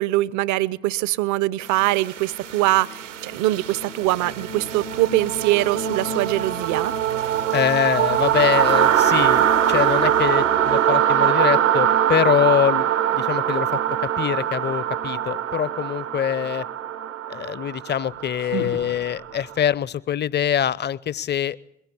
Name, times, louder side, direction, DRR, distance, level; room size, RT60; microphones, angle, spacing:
voice 1, 0.0-6.9, right 17 dB, 55° right, 23 dB, 0.8 m, -23 dB
sound 1, 1.7-19.5, right 10 dB, 80° right, 1.1 m, -23 dB
voice 2, 7.5-13.7 14.0-16.7 17.3-21.6, left 9 dB, 30° left, 22 dB, 0.7 m, -24 dB
sound 2, 17.9-19.6, right 3 dB, 90° left, 1.9 m, -35 dB
21.5 x 16.0 x 8.6 m, 0.76 s
figure-of-eight pair, 50°, 36 cm